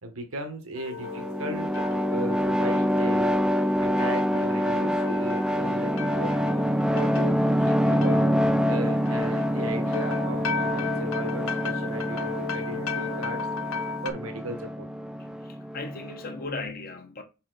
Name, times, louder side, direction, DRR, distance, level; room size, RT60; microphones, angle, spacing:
voice 1, 0.0-3.4 3.8-13.5 14.0-14.9, right 1 dB, 80° right, 1.3 m, -37 dB
sound 1, 0.8-14.1, left 5 dB, 80° left, 0.6 m, -36 dB
sound 2, 1.0-16.4, equal, 5° right, 0.3 m, -26 dB
voice 2, 15.4-17.2, left 3 dB, 45° left, 1.0 m, -36 dB
5.4 x 4.3 x 4.0 m
head